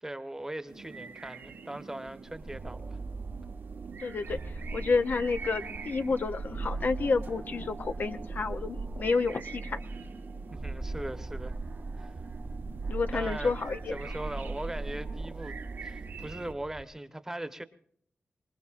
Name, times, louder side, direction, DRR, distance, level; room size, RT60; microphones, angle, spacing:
voice 1, 0.0-3.0 10.5-11.5 12.0-12.1 13.1-13.5 13.9-17.6, right 1 dB, 15° right, 1.0 m, -40 dB
sound 1, 0.7-16.5, right 5 dB, 85° right, 1.2 m, -46 dB
sound 2, 2.2-16.8, right 3 dB, 45° right, 0.8 m, -39 dB
voice 2, 4.0-9.8 12.9-14.0, left 4 dB, 60° left, 0.6 m, -30 dB
25.0 x 20.0 x 2.5 m
wide cardioid pair, 115°, 4 cm